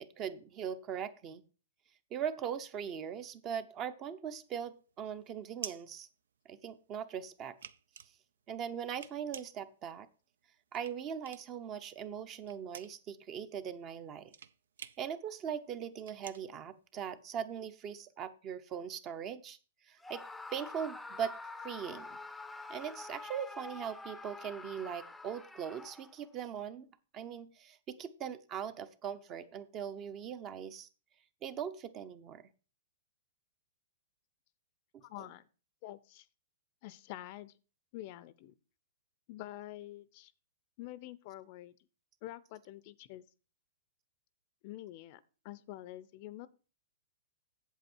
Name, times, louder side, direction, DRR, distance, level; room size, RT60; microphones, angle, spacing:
voice 1, 0.0-1.4 2.1-6.1 6.5-7.6 8.5-10.1 10.7-14.3 15.0-19.6 19.9-20.2 20.5-21.3 21.6-22.2 22.7-26.9 27.1-30.9 31.4-32.5, right 8 dB, 30° right, 13 dB, 0.7 m, -40 dB
sound 1, 4.3-6.9 7.2-11.7 12.0-17.5, right 8 dB, 80° right, 0.5 m, -50 dB
Screaming, 20.0-26.3, left 3 dB, 5° left, 0.6 m, -47 dB
voice 2, 35.0-35.4 35.8-36.3 36.8-37.5 37.9-38.5 39.3-40.3 40.8-41.7 42.2-43.2 44.6-46.5, left 15 dB, 45° left, 18 dB, 0.5 m, -47 dB
8.1 x 7.6 x 4.4 m, 0.35 s
hypercardioid pair, 140°, 0 cm